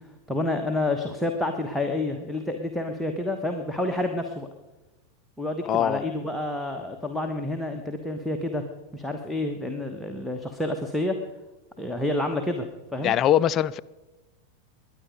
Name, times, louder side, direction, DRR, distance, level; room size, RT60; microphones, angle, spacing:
voice 1, 0.3-4.5 5.4-8.6 8.9-11.2 11.8-12.7 12.9-13.1, left 2 dB, ahead, 1.2 m, -29 dB
voice 2, 5.6-6.0 13.0-13.8, left 11 dB, 30° left, 0.4 m, -22 dB
21.5 x 9.4 x 5.2 m
figure-of-eight pair, 90°, 0 cm